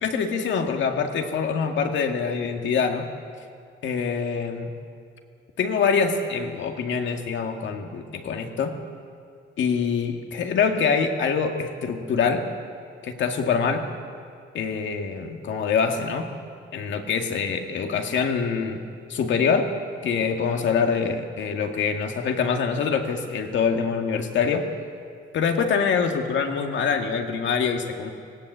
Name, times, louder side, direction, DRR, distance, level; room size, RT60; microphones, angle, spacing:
voice 1, 0.0-3.1 3.8-4.7 5.6-8.7 9.6-12.5 13.0-13.8 14.5-16.3 16.7-18.8 19.1-19.7 20.0-24.7 25.3-28.1, left 6 dB, 70° left, 4 dB, 2.0 m, -25 dB
19.0 x 17.0 x 8.1 m, 2.3 s
cardioid pair, 90°, 20 cm